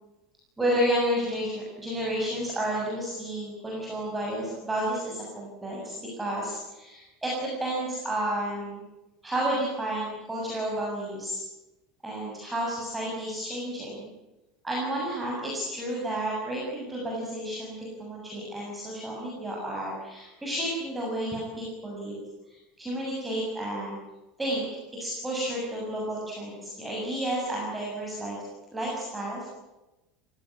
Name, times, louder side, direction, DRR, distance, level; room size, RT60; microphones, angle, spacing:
voice 1, 0.6-8.8 9.2-11.4 12.0-14.1 14.6-22.2 22.5-24.0 24.4-24.7 24.9-28.4 28.7-29.5, right 1 dB, 10° right, -4 dB, 7.1 m, -31 dB
29.5 x 17.0 x 9.9 m, 1.0 s
cardioid pair, 160°, 0 cm